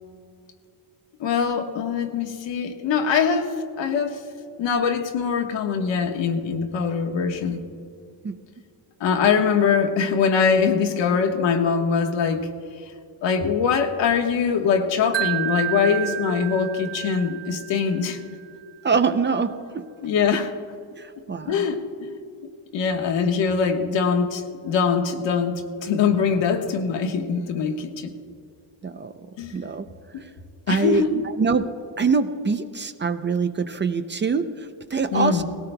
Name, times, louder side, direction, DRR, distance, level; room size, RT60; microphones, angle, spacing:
voice 1, 1.2-4.2 4.6-7.6 9.0-12.5 13.2-18.2 20.0-20.5 21.5-22.1 22.7-28.1 29.4-29.5 30.7-31.2 35.1-35.4, left 6 dB, 80° left, 4 dB, 1.4 m, -23 dB
Wind chime, 15.1-18.3, right 17 dB, 85° right, 0.8 m, -30 dB
voice 2, 18.8-19.8 21.0-21.6 28.8-29.1 29.5-29.8 30.2-30.3 30.7-31.6 32.0-35.4, right 5 dB, 25° right, 9 dB, 0.5 m, -24 dB
19.0 x 17.5 x 2.2 m, 2.3 s
cardioid pair, 130°, 43 cm